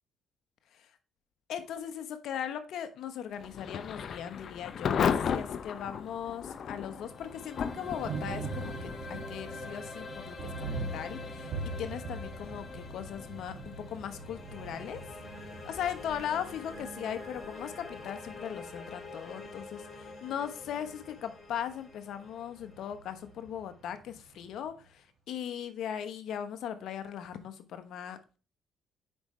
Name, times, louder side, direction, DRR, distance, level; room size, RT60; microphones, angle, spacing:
voice 1, 1.5-10.7 10.9-15.0 15.6-28.2, left 9 dB, 75° left, 9 dB, 1.0 m, -39 dB
Thunder / Rain, 3.4-20.1, left 7 dB, 55° left, 0.7 m, -38 dB
sound 1, 6.7-23.7, left 3 dB, 40° left, 2.4 m, -46 dB
Thunder, 6.9-24.8, right 3 dB, 65° right, 2.5 m, -43 dB
7.8 x 5.6 x 3.2 m, 0.34 s
cardioid pair, 75°, 0 cm